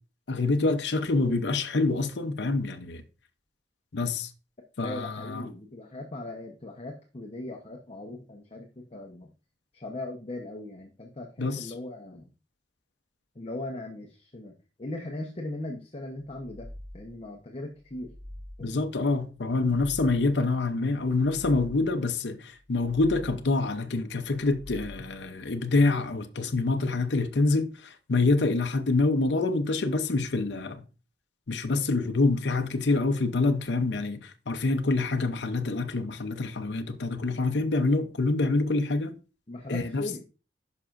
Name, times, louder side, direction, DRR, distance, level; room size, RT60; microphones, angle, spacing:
voice 1, 0.3-3.0 3.9-4.3 4.8-5.5 11.4-11.7 18.6-30.8 31.5-39.2 39.7-40.0, left 3 dB, 65° left, 0.7 m, -26 dB
voice 2, 4.8-9.3 9.7-12.3 13.3-16.7 16.9-18.1 18.6-18.9 39.5-40.2, left 2 dB, 35° left, 0.9 m, -39 dB
sound 1, 16.2-17.3 17.8-18.9 19.4-20.5 21.0-22.1 22.6-23.7 24.2-25.3, left 1 dB, 20° right, 0.9 m, -46 dB
9.7 x 5.9 x 2.5 m
head